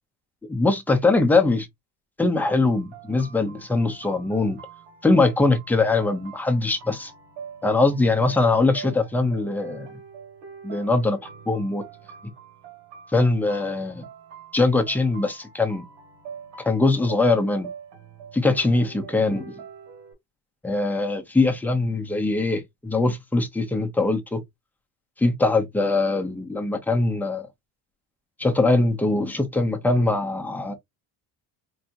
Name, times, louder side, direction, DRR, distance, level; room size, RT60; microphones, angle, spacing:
voice 1, 0.5-1.7 2.2-4.6 5.0-7.1 7.6-9.9 10.6-11.2 11.5-11.8 13.1-14.0 14.5-15.8 16.6-17.7 18.3-19.5 20.6-24.4 25.2-27.4 28.4-30.7, left 3 dB, 5° left, 0.6 m, -22 dB
sound 1, 2.4-20.1, right 7 dB, 85° right, 1.9 m, -44 dB
4.6 x 2.8 x 2.5 m
cardioid pair, 160°, 41 cm